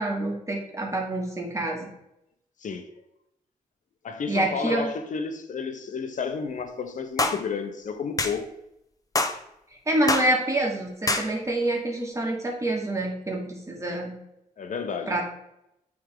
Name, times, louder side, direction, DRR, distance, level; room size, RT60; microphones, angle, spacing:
voice 1, 0.0-1.9 4.3-4.9 9.9-14.1 15.1-15.2, right 1 dB, 20° right, 1.9 m, -27 dB
voice 2, 4.0-8.5 13.9-14.0 14.6-15.2, left 5 dB, 65° left, 0.9 m, -31 dB
sound 1, 7.2-7.4 8.2-8.4 9.1-9.4 10.1-10.3 11.1-11.3, left 2 dB, 25° left, 0.7 m, -24 dB
8.6 x 3.6 x 3.7 m
cardioid pair, 85°, 14 cm